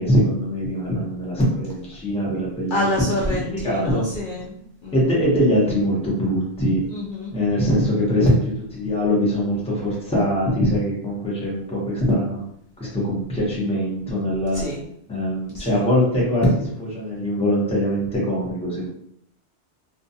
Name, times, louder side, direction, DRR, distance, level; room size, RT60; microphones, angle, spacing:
voice 1, 0.0-2.9 3.3-4.0 4.9-6.8 7.3-12.4 12.8-14.6 15.1-18.9, equal, 5° left, -5 dB, 0.7 m, -22 dB
voice 2, 2.7-5.0 6.9-7.4 7.9-8.2 14.5-14.9 15.5-15.8, left 1 dB, 60° left, -5 dB, 0.6 m, -28 dB
2.3 x 2.2 x 2.7 m, 0.70 s
omnidirectional pair, 1.1 m